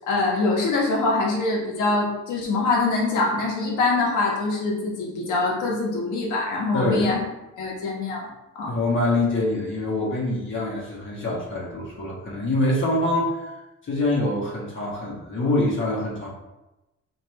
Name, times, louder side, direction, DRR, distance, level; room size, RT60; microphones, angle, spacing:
voice 1, 0.0-7.2 7.6-8.3 8.6-8.7, left 3 dB, 80° left, -2 dB, 1.3 m, -24 dB
voice 2, 6.7-7.1 8.7-13.5 13.8-16.3, left 1 dB, 40° left, -4 dB, 1.3 m, -25 dB
4.3 x 2.9 x 3.2 m, 0.96 s
cardioid pair, 90°, 30 cm